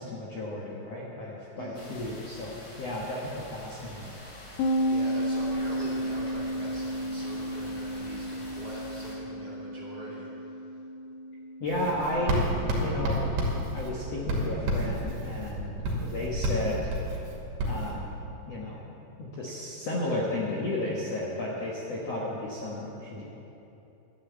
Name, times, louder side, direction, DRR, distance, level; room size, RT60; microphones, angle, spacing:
voice 1, 0.0-2.5 2.8-4.1 11.6-12.4 12.8-13.3 13.7-16.9 17.7-18.9 19.2-23.2, left 1 dB, 65° left, -4 dB, 1.6 m, -33 dB
voice 2, 1.6-2.0 4.9-10.5, right 1 dB, 50° right, -6 dB, 0.6 m, -42 dB
sound 1, 1.7-9.2, equal, 35° left, 1.5 m, -46 dB
sound 2, 4.6-14.1, equal, 80° left, 3.2 m, -33 dB
Writing, 11.7-17.9, right 1 dB, 80° right, 4.5 m, -30 dB
11.5 x 11.5 x 8.1 m, 3.0 s
omnidirectional pair, 5.0 m